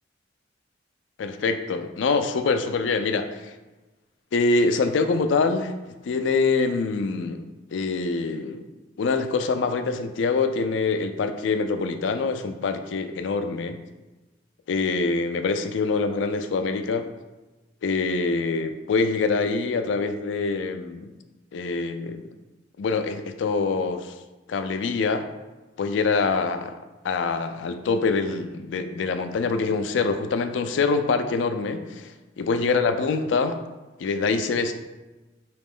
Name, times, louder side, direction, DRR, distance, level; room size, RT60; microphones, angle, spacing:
voice 1, 1.2-3.5 4.3-5.7 6.0-7.4 7.7-8.6 9.0-13.8 14.7-17.1 17.8-21.1 21.5-22.3 22.8-24.1 24.5-25.3 25.8-26.7 27.0-32.1 32.4-33.6 34.0-34.7, left 4 dB, 75° left, 8 dB, 0.4 m, -25 dB
4.0 x 3.0 x 3.6 m, 1.1 s
head